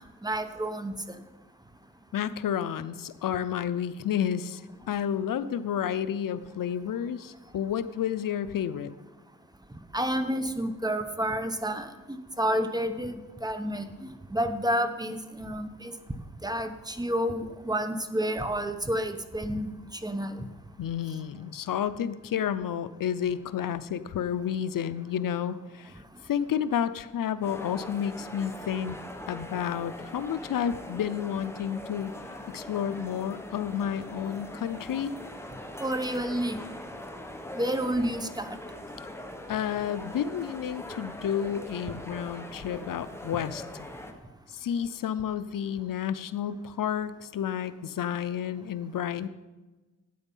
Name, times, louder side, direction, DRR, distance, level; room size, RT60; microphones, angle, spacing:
voice 1, 0.2-0.9 9.9-11.9 12.4-13.9 14.3-15.9 16.4-19.7 20.0-20.3 35.8-36.6 37.5-38.6, equal, 10° right, 8 dB, 1.0 m, -29 dB
voice 2, 2.1-4.6 4.9-8.9 15.4-15.5 20.8-29.0 29.3-32.1 32.5-35.1 39.5-43.9 44.5-49.3, left 9 dB, 85° left, 14 dB, 0.6 m, -31 dB
sound 1, 27.4-44.1, left 1 dB, 10° left, 1.3 m, -42 dB
12.5 x 8.9 x 5.5 m, 1.2 s
wide cardioid pair, 90°, 32 cm